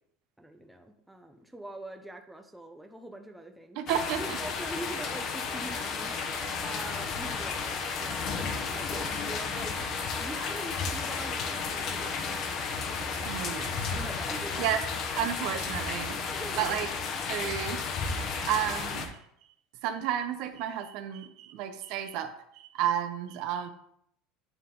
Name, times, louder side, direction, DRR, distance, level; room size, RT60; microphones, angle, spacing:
voice 1, 0.4-3.8 4.2-6.1 6.6-13.3 13.9-14.6 16.3-16.8, right 1 dB, 5° right, 5 dB, 0.5 m, -43 dB
voice 2, 3.8-4.4 13.2-13.8 14.6-14.8 15.2-16.2 16.6-16.9 17.3-17.9 18.4-19.2 19.8-23.7, right 10 dB, 55° right, 10 dB, 0.6 m, -31 dB
sound 1, 3.9-19.1, left 5 dB, 40° left, 0.8 m, -33 dB
8.9 x 3.7 x 3.7 m, 0.71 s
cardioid pair, 160°, 0 cm